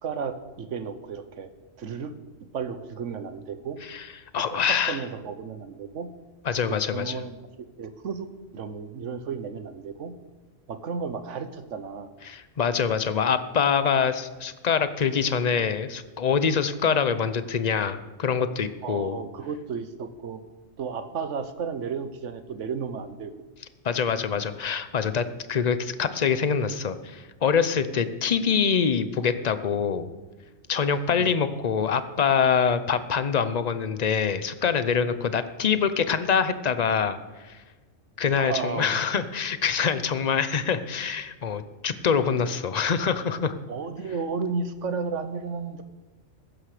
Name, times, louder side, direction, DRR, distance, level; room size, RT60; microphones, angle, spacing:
voice 1, 0.0-1.5 1.8-2.2 2.5-3.8 4.3-6.1 6.7-7.4 7.8-10.1 10.7-12.1 18.8-20.4 20.8-23.3 31.2-31.3 38.4-39.1 43.7-45.8, right 5 dB, 70° right, 11 dB, 1.3 m, -33 dB
voice 2, 4.3-5.0 6.5-7.2 12.2-19.2 23.8-30.1 30.7-37.2 37.5-37.6 38.2-43.5, left 6 dB, 40° left, 12 dB, 0.7 m, -25 dB
15.0 x 11.5 x 5.0 m, 1.2 s
omnidirectional pair, 1.3 m